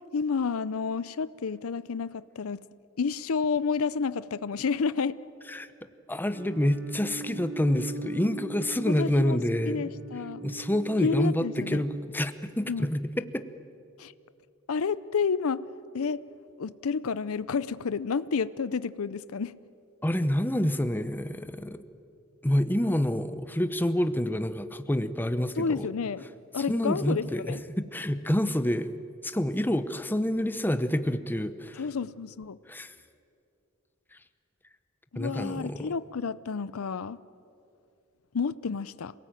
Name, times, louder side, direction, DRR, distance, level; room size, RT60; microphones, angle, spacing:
voice 1, 0.1-2.6 3.0-5.2 9.0-9.4 9.7-10.4 11.0-11.8 12.7-12.9 14.0-14.1 14.7-15.6 15.9-16.2 16.6-19.5 25.6-26.2 26.5-27.6 31.7-32.6 35.1-37.2 38.3-39.1, left 5 dB, 80° left, 17 dB, 0.6 m, -30 dB
voice 2, 6.1-9.9 10.4-13.5 20.0-21.8 22.4-25.9 26.7-28.9 29.2-31.8 32.7-32.9 35.2-35.9, left 1 dB, 10° left, 11 dB, 0.8 m, -28 dB
sound 1, 6.3-12.0, right 2 dB, 70° right, 3.4 m, -41 dB
27.0 x 18.0 x 9.1 m, 2.5 s
head